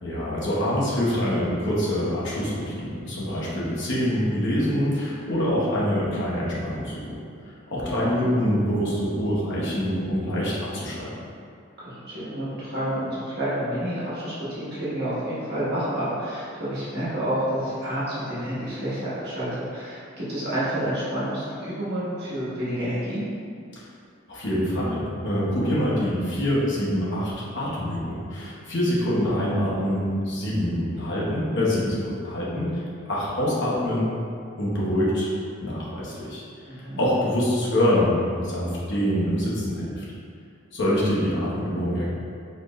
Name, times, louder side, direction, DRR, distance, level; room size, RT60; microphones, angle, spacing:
voice 1, 0.0-7.2 7.7-11.1 23.7-23.9 24.3-32.8 33.1-34.1 34.6-35.3 35.6-36.4 36.8-40.0 40.7-42.1, equal, 60° left, -7 dB, 0.9 m, -25 dB
voice 2, 11.8-23.2 36.7-37.0, right 1 dB, 50° right, -11 dB, 1.5 m, -29 dB
4.2 x 2.6 x 3.1 m, 2.4 s
head